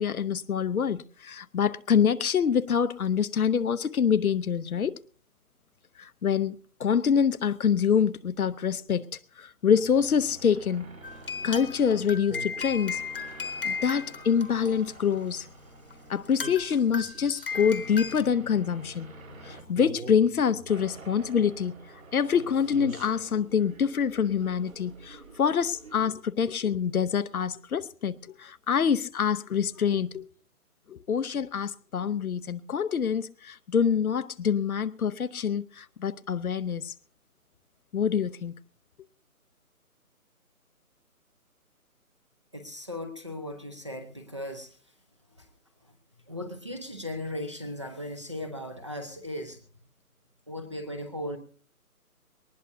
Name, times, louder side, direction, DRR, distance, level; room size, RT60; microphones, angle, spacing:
voice 1, 0.0-4.9 6.0-9.0 9.4-10.9 11.4-13.0 13.6-15.5 16.1-19.1 19.4-21.7 22.1-30.3 30.9-36.9 37.9-38.6, left 7 dB, 70° left, 0.8 m, -26 dB
sound 1, 9.7-26.1, right 2 dB, 65° right, 3.8 m, -46 dB
sound 2, 11.0-15.2 15.9-16.0 16.3-18.2, left 5 dB, 35° left, 1.1 m, -36 dB
voice 2, 42.5-44.7 45.4-45.5 45.8-45.9 46.3-49.6 50.5-51.4, left 1 dB, 20° right, 0.7 m, -37 dB
21.5 x 19.0 x 2.7 m
hypercardioid pair, 170°, 45 cm